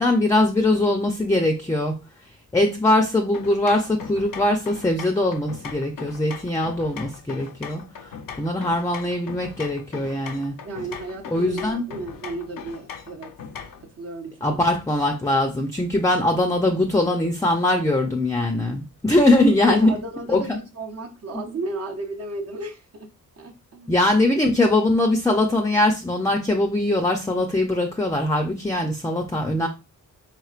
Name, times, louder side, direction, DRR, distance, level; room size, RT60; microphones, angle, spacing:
voice 1, 0.0-2.0 2.5-8.1 8.4-10.6 11.3-11.8 14.4-20.0 20.3-20.6 23.9-29.7, left 1 dB, 10° left, 0.4 m, -21 dB
sound 1, 3.3-13.9, left 6 dB, 85° left, 0.6 m, -39 dB
voice 2, 10.6-13.3 13.8-14.6 19.6-23.1 23.4-24.1, right 1 dB, 50° right, 0.6 m, -33 dB
4.4 x 3.6 x 2.4 m
wide cardioid pair, 140°, 32 cm